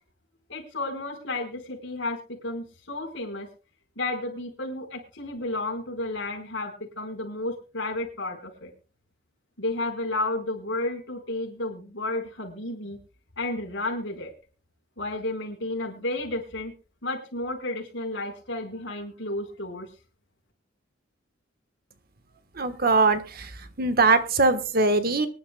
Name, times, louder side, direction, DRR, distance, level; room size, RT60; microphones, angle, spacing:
voice 1, 0.5-3.5 4.0-8.7 9.6-13.0 13.4-14.3 15.0-16.7 17.0-19.9, left 2 dB, 60° left, 2 dB, 4.6 m, -32 dB
voice 2, 22.6-23.5 23.8-25.3, right 3 dB, 50° right, 10 dB, 1.2 m, -21 dB
24.0 x 11.0 x 2.2 m, 0.34 s
head